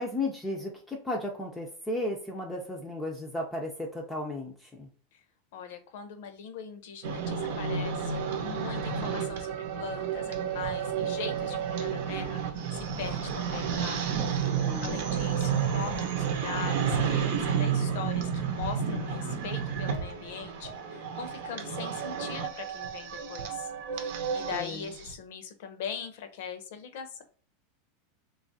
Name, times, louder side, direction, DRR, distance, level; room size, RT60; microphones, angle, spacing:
voice 1, 0.0-4.9 14.4-15.0 24.5-24.9, left 1 dB, 10° left, 0 dB, 0.5 m, -35 dB
voice 2, 5.5-12.4 12.7-14.5 14.8-27.2, left 7 dB, 65° left, 8 dB, 0.7 m, -41 dB
sound 1, 7.0-25.1, right 7 dB, 65° right, 0.7 m, -31 dB
3.1 x 2.4 x 3.9 m, 0.42 s
supercardioid pair, 145°, 0 cm